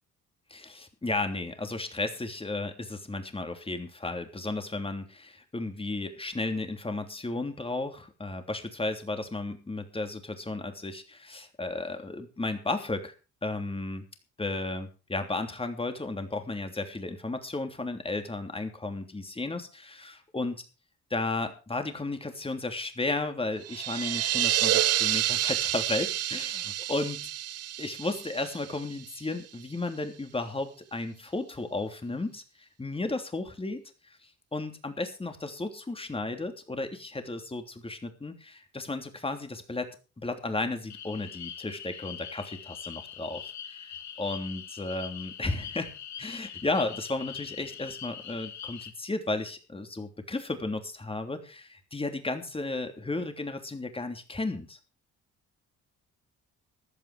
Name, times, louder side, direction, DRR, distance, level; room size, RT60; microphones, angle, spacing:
voice 1, 0.5-13.1 13.4-14.0 14.4-20.5 21.1-27.3 27.8-33.8 34.5-39.9 40.2-45.9 46.2-54.8, left 2 dB, 20° left, 6 dB, 3.1 m, -34 dB
sound 1, 23.6-29.2, right 12 dB, 55° right, 0.6 m, -29 dB
sound 2, 40.9-48.9, left 8 dB, 65° left, 2.2 m, -42 dB
15.0 x 11.0 x 5.0 m, 0.33 s
cardioid pair, 90°, 30 cm